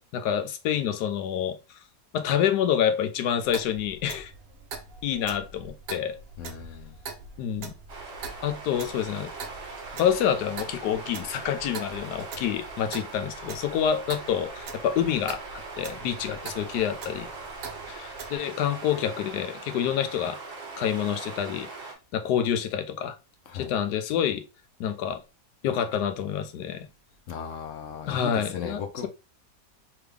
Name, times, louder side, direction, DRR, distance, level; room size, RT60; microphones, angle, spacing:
voice 1, 0.0-1.8 2.1-4.3 5.0-6.2 7.4-7.7 8.4-9.3 10.0-15.4 15.8-17.3 17.9-20.4 20.8-21.7 22.1-23.2 23.5-24.4 24.8-25.2 25.6-26.9 28.1-29.1, left 9 dB, 80° left, 1.2 m, -27 dB
Clock, 3.5-18.4, right 4 dB, 60° right, 0.6 m, -43 dB
voice 2, 6.4-6.9 23.5-23.7 27.3-29.1, left 7 dB, 60° left, 0.9 m, -36 dB
sound 1, 7.9-21.9, right 3 dB, 45° right, 1.4 m, -41 dB
3.4 x 3.4 x 3.2 m
omnidirectional pair, 1.7 m